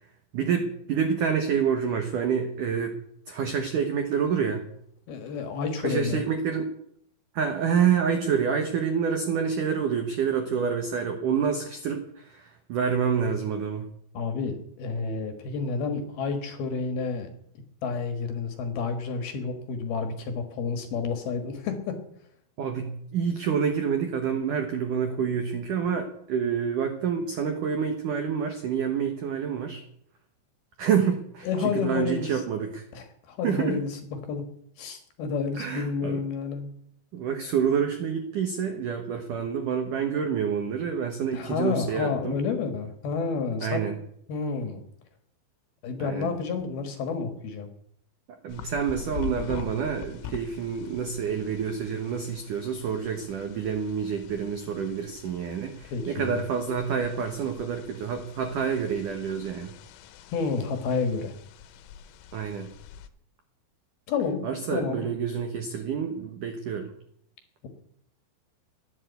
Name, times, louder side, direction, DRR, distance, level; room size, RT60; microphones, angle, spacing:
voice 1, 0.3-3.0 3.3-4.7 5.8-6.6 7.3-13.9 22.6-29.8 30.8-32.8 33.4-33.8 35.6-36.2 37.1-42.3 43.6-44.0 46.0-46.3 48.4-59.7 62.3-62.7 64.4-66.9, right 7 dB, 75° right, 5 dB, 1.9 m, -28 dB
voice 2, 5.1-6.2 14.1-17.3 17.8-22.0 31.4-32.4 32.9-34.5 34.8-36.7 41.3-43.8 44.3-44.8 45.8-47.7 55.9-56.4 60.3-61.3 64.1-64.5 64.7-65.0, left 5 dB, 60° left, 7 dB, 2.9 m, -30 dB
sound 1, 48.5-63.1, left 8 dB, 85° left, 3.7 m, -44 dB
15.0 x 11.0 x 8.2 m, 0.70 s
omnidirectional pair, 5.8 m